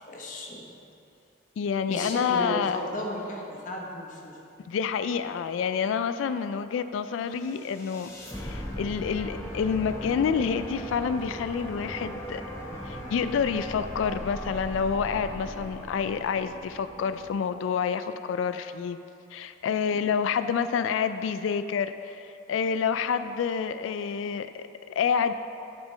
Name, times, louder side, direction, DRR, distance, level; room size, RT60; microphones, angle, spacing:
voice 1, 0.1-0.6 1.9-4.4 19.9-20.1, left 1 dB, 45° left, -2 dB, 1.1 m, -35 dB
voice 2, 1.6-2.8 4.7-8.1 8.4-12.4 12.8-19.0 19.3-25.3, left 6 dB, 90° left, 11 dB, 0.3 m, -28 dB
sound 1, 7.4-17.6, equal, 15° left, 1.2 m, -38 dB
12.0 x 5.9 x 3.3 m, 2.7 s
head